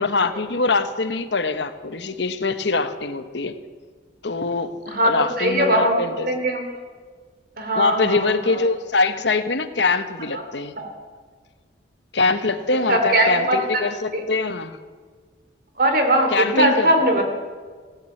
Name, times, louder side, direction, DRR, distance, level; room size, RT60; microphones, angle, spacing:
voice 1, 0.0-3.5 4.2-6.3 7.7-10.8 12.1-14.8 16.3-16.9 17.2-17.3, left 3 dB, 70° left, 10 dB, 1.0 m, -23 dB
voice 2, 4.9-6.7 7.6-8.3 10.8-10.9 12.9-13.8 14.1-14.2 15.8-17.2, right 1 dB, 50° right, 4 dB, 2.8 m, -20 dB
16.5 x 9.8 x 8.4 m, 1.6 s
head